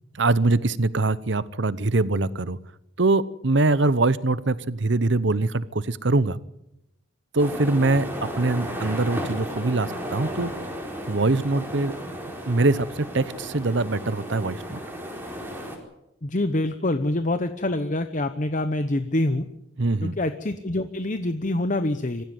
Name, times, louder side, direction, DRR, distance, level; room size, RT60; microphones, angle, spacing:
voice 1, 0.1-2.6 3.0-6.4 7.3-10.5 11.1-11.9 12.5-14.8 19.8-20.1, right 2 dB, 60° right, 17 dB, 0.9 m, -23 dB
sound 1, 7.4-15.8, equal, 10° right, 4.5 m, -34 dB
voice 2, 16.2-19.5 20.0-22.2, left 1 dB, 40° left, 10 dB, 0.9 m, -26 dB
24.5 x 15.0 x 9.5 m, 0.88 s
head